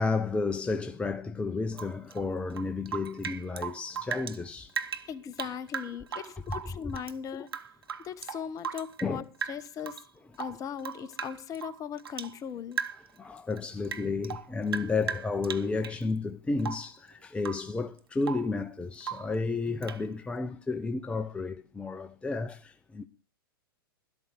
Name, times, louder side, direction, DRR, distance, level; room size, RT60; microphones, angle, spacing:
voice 1, 0.0-4.7 9.0-9.2 13.2-23.1, left 4 dB, 10° left, 0.7 m, -32 dB
Rain / Drip, 1.7-4.4 4.7-7.2 7.5-9.1 9.4-10.0 10.3-12.4 12.7-13.2 13.5-16.0 16.6-17.0 17.4-17.7 18.0-18.5 19.0-19.4 19.8-20.1, right 7 dB, 80° right, 1.0 m, -38 dB
voice 2, 5.1-7.5 8.0-10.1 10.4-12.8, left 8 dB, 30° left, 1.0 m, -38 dB
12.5 x 12.5 x 4.6 m
hypercardioid pair, 105°, 12 cm